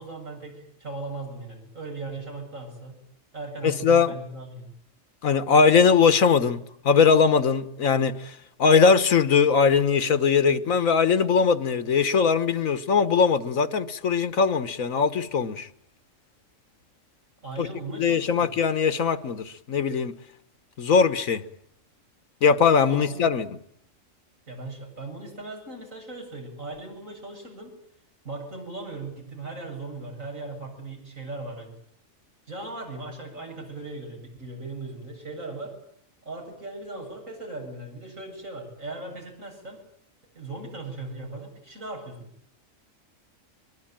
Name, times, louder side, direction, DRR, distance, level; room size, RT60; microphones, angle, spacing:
voice 1, 0.0-2.9 3.3-4.7 17.4-18.5 22.9-23.3 24.5-27.7 28.2-31.8 32.5-35.8 36.2-39.8 40.3-42.3, right 2 dB, 75° right, 8.5 m, -38 dB
voice 2, 3.6-4.1 5.2-15.7 17.6-17.7 18.0-20.1 20.8-21.4 22.4-23.6, left 5 dB, 80° left, 1.7 m, -21 dB
23.5 x 23.0 x 9.0 m
omnidirectional pair, 1.4 m